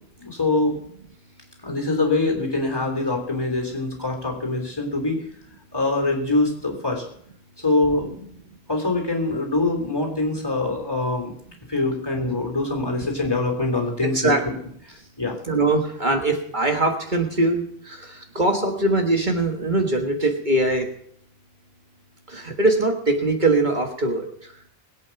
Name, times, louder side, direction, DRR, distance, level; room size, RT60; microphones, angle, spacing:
voice 1, 0.2-0.8 1.6-5.2 5.7-7.0 7.6-8.2 8.7-11.3 11.7-14.5 15.2-15.4, left 2 dB, 20° left, 2 dB, 3.5 m, -24 dB
voice 2, 15.5-20.9 22.3-24.5, right 2 dB, 50° right, 3 dB, 1.7 m, -22 dB
21.5 x 8.6 x 5.9 m, 0.66 s
omnidirectional pair, 1.1 m